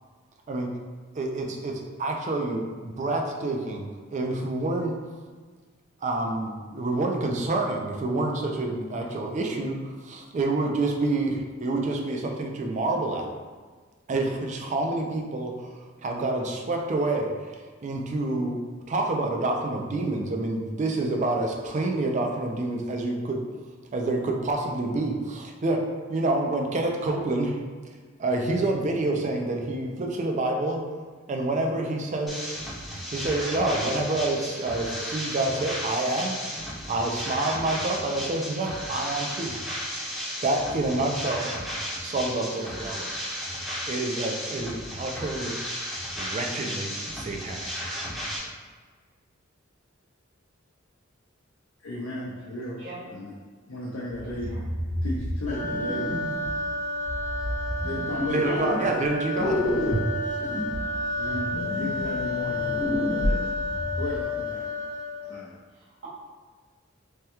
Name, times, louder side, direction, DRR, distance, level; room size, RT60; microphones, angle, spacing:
voice 1, 1.1-4.9 6.0-13.3 14.1-15.7 16.0-18.6 18.9-23.4 23.9-25.8 26.1-27.6 28.2-30.8 31.3-32.4 33.1-36.4 36.9-39.5 40.4-41.5 42.0-43.1 43.9-45.9 46.1-47.7 58.3-59.6, right 2 dB, 35° right, 2 dB, 0.4 m, -28 dB
sound 1, 32.3-48.4, equal, ahead, 0.7 m, -34 dB
voice 2, 51.8-52.8 53.1-53.3 53.7-54.6 55.0-56.1 57.7-58.6 59.7-60.0 61.2-63.5 64.0-64.6 65.2-65.6, left 1 dB, 70° left, -7 dB, 0.5 m, -35 dB
voice 3, 52.8-53.1 54.2-54.7 65.7-66.1, right 2 dB, 75° right, -6 dB, 1.0 m, -44 dB
sound 2, 54.2-56.6 57.0-59.1 59.4-64.2, equal, 90° left, 0.9 m, -30 dB
sound 3, 55.5-65.4, left 2 dB, 40° left, 0.9 m, -31 dB
3.4 x 2.2 x 2.8 m, 1.5 s
head